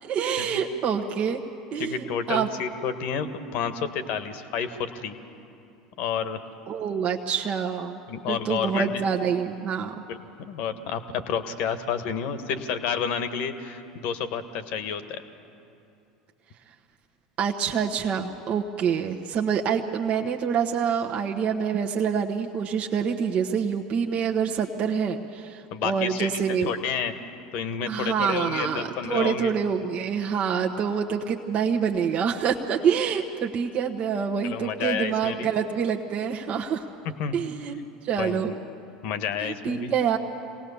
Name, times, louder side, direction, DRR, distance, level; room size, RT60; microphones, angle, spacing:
voice 1, 0.0-1.4 1.7-2.5 6.7-8.0 8.3-9.9 17.4-26.7 27.9-36.8 37.3-38.5 39.4-40.2, right 7 dB, 45° right, 1 dB, 1.1 m, -26 dB
voice 2, 1.8-5.2 6.0-6.4 8.1-9.0 10.1-15.2 25.7-27.1 27.5-29.5 34.4-35.5 37.2-37.4 38.2-38.5 39.0-39.9, left 7 dB, 55° left, 10 dB, 1.4 m, -30 dB
26.0 x 19.0 x 7.0 m, 2.7 s
hypercardioid pair, 75°, 3 cm